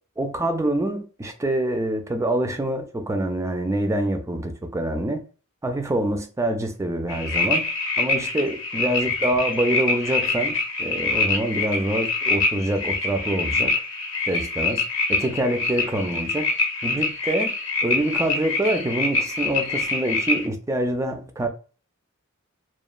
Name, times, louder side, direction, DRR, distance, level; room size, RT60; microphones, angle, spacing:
voice 1, 0.2-5.2 5.6-7.6 8.0-13.7 14.3-14.8 15.1-16.5 16.8-17.5 17.8-21.5, right 1 dB, 15° right, 0.3 m, -25 dB
sound 1, 7.1-20.5, left 3 dB, 60° left, 0.7 m, -25 dB
2.9 x 2.1 x 2.3 m
head